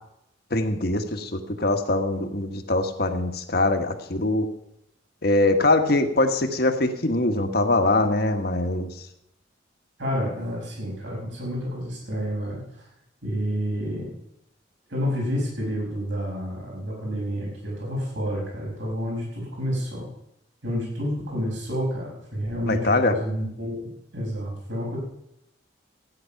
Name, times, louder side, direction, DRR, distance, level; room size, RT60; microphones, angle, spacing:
voice 1, 0.5-4.5 5.2-8.9 22.7-23.1, left 2 dB, 55° left, 5 dB, 1.4 m, -23 dB
voice 2, 10.0-12.6 13.2-14.1 14.9-20.1 20.6-23.8 24.1-25.0, equal, 75° right, -3 dB, 6.0 m, -29 dB
15.5 x 9.8 x 5.8 m, 0.80 s
head